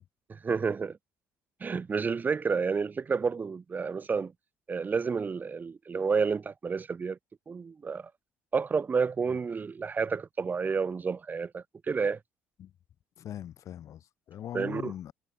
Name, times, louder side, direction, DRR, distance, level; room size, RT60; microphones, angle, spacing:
voice 1, 0.3-1.0 1.6-4.3 4.7-7.2 7.5-8.1 8.5-12.2 14.5-14.9, right 5 dB, 30° right, 0.4 m, -30 dB
voice 2, 13.2-15.1, left 10 dB, 55° left, 2.1 m, -41 dB
hypercardioid pair, 55°, 6 cm